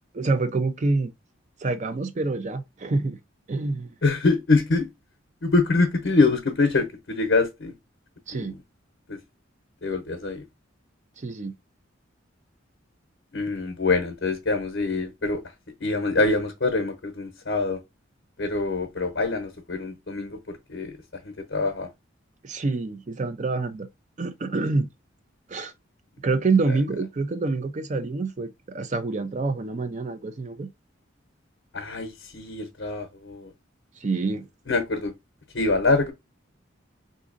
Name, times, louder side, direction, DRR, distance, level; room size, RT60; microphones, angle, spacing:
voice 1, 0.1-1.1 1.6-3.2 3.5-3.9 8.3-8.5 11.2-11.5 22.4-23.9 24.2-24.9 25.5-25.7 26.2-30.7 34.0-34.5, right 3 dB, 35° right, 0.4 m, -26 dB
voice 2, 4.0-4.9 5.4-7.7 8.3-8.6 9.1-9.2 9.8-10.4 13.3-15.4 15.8-17.8 18.4-21.0 21.4-21.9 31.7-33.5 34.7-35.1 35.5-36.1, left 3 dB, 55° left, 0.8 m, -24 dB
3.9 x 2.6 x 2.5 m
head